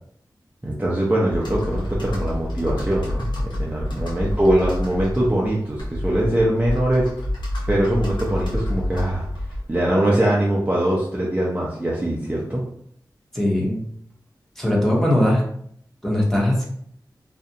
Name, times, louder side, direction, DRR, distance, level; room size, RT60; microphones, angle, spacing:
voice 1, 0.6-7.1 7.7-9.3 9.7-12.6, right 1 dB, 20° right, -5 dB, 0.5 m, -22 dB
Computer keyboard, 1.3-9.9, left 1 dB, 85° left, 0.7 m, -28 dB
voice 2, 13.3-13.8 14.6-15.4 16.0-16.7, left 1 dB, 5° left, -4 dB, 0.8 m, -20 dB
2.4 x 2.1 x 2.7 m, 0.66 s
wide cardioid pair, 60°, 8 cm